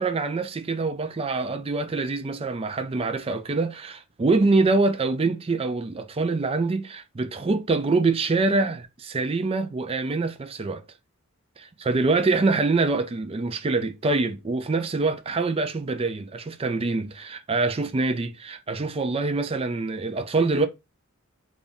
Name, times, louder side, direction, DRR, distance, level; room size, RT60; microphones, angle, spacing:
voice 1, 0.0-10.8 11.6-20.7, right 3 dB, 25° right, 0.4 m, -25 dB
4.0 x 2.4 x 3.4 m
head